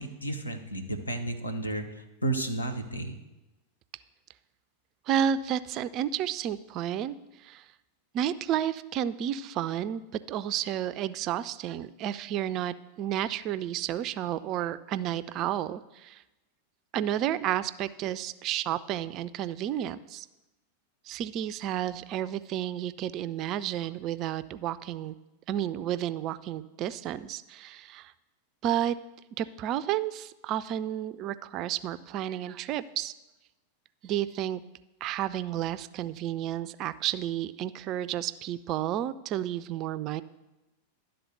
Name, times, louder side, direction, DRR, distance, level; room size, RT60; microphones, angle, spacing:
voice 1, 0.0-3.2, right 1 dB, 80° left, 6 dB, 0.8 m, -32 dB
voice 2, 5.1-7.1 7.4-7.6 8.1-10.0 10.3-16.2 16.9-20.3 21.1-25.1 25.5-28.1 28.6-29.0 29.4-33.1 34.0-34.6 35.0-40.2, right 11 dB, 35° right, 13 dB, 0.3 m, -31 dB
11.5 x 3.9 x 6.7 m, 1.0 s
figure-of-eight pair, 90°, 0 cm